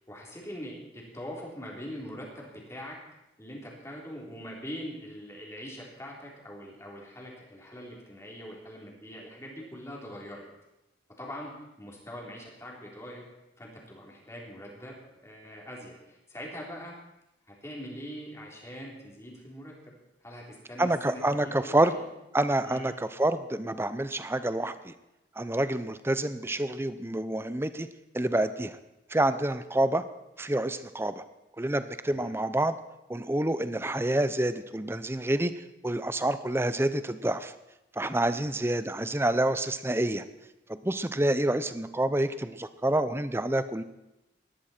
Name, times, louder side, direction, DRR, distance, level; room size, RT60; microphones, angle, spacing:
voice 1, 0.1-3.0 3.4-10.5 11.2-13.3 13.6-16.9 17.5-19.7 20.2-22.0 22.6-22.9 32.1-32.4 38.3-38.5, equal, 15° left, -3 dB, 3.5 m, -43 dB
voice 2, 20.8-21.9 22.3-24.9 25.4-27.9 28.1-28.8 29.1-30.0 30.4-31.2 31.6-32.7 33.1-35.5 35.8-37.5 38.0-40.2 40.7-43.8, right 1 dB, 15° right, 12 dB, 0.6 m, -28 dB
19.0 x 13.0 x 4.4 m, 0.93 s
head